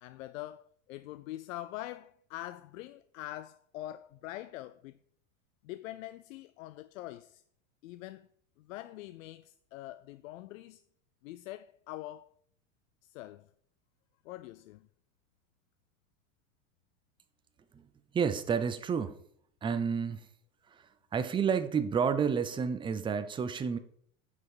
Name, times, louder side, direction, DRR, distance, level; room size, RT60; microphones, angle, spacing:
voice 1, 0.0-5.0 5.6-7.4 7.8-8.3 8.6-10.8 11.2-12.3 13.0-13.5 14.2-14.8, left 15 dB, 70° left, 0.6 m, -44 dB
voice 2, 18.1-19.2 19.6-20.3 20.7-20.9 21.1-23.8, right 6 dB, 10° right, 0.5 m, -30 dB
9.5 x 5.4 x 4.8 m
supercardioid pair, 130°, 41 cm